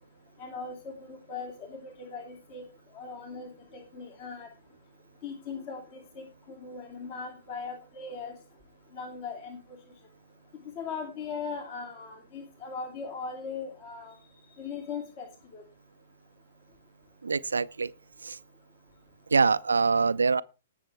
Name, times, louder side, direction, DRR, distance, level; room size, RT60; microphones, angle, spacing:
voice 1, 0.4-2.6 2.9-4.5 5.2-8.3 8.9-9.6 10.8-14.1 14.5-15.3 15.5-15.6, left 5 dB, 40° left, 2.8 m, -39 dB
voice 2, 17.2-17.9 18.2-18.4 19.3-20.4, right 4 dB, 75° right, 0.4 m, -24 dB
19.5 x 7.3 x 3.4 m
figure-of-eight pair, 115°, 0 cm